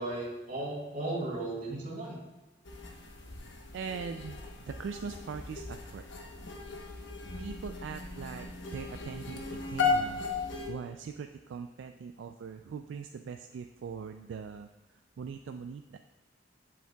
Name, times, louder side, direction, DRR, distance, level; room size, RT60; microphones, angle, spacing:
voice 1, 0.0-2.2, right 2 dB, 45° right, -6 dB, 2.1 m, -35 dB
sound 1, 2.6-10.7, left 4 dB, 90° left, 1.0 m, -36 dB
voice 2, 3.7-6.1 7.4-10.2 10.7-16.0, right 6 dB, 85° right, 6 dB, 0.3 m, -41 dB
8.1 x 7.3 x 2.3 m, 1.1 s
head